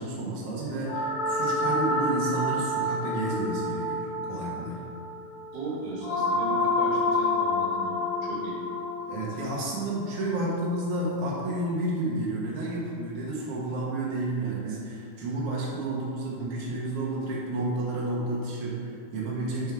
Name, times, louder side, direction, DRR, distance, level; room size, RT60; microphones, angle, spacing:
voice 1, 0.0-4.8 9.1-19.7, right 2 dB, 75° right, -5 dB, 1.3 m, -31 dB
sound 1, 0.9-11.1, left 2 dB, 85° left, 3.7 m, -29 dB
voice 2, 5.5-8.6, right 2 dB, 55° right, -5 dB, 2.1 m, -37 dB
11.0 x 3.8 x 4.7 m, 2.2 s
omnidirectional pair, 4.7 m